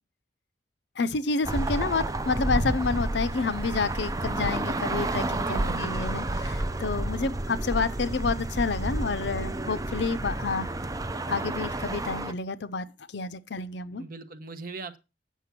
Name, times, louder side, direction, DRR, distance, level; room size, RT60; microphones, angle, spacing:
voice 1, 1.0-10.7 11.3-12.9 13.1-14.0, left 4 dB, 65° left, 0.6 m, -29 dB
sound 1, 1.4-12.3, right 2 dB, 20° right, 0.5 m, -30 dB
voice 2, 5.5-5.9 14.0-15.0, right 3 dB, 50° right, 1.1 m, -41 dB
8.3 x 6.0 x 5.9 m
head